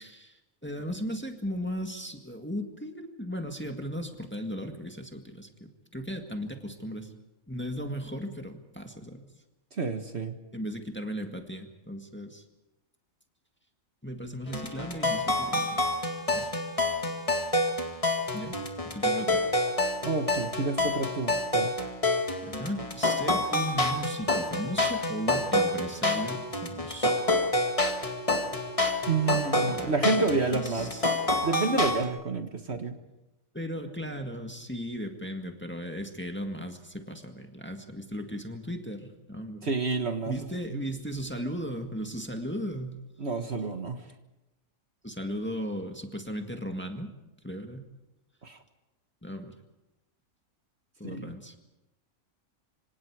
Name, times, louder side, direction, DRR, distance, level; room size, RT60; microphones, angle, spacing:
voice 1, 0.0-7.1 7.5-9.2 10.5-12.4 14.0-15.8 16.3-16.5 18.3-18.6 18.8-19.4 22.4-27.2 28.0-28.1 29.6-29.9 30.2-31.2 33.5-39.7 40.3-43.0 45.0-47.1 47.4-47.9 49.2-49.6 51.0-51.5, equal, 10° left, 4 dB, 1.8 m, -36 dB
voice 2, 9.8-10.4 20.0-21.7 29.1-30.9 31.4-33.0 39.6-40.4 40.7-40.8 43.2-44.0 48.4-48.6 51.0-51.3, right 4 dB, 50° right, 7 dB, 1.7 m, -29 dB
sound 1, 14.5-32.0, left 2 dB, 25° left, 2.1 m, -28 dB
26.5 x 26.0 x 4.8 m, 0.97 s
omnidirectional pair, 1.4 m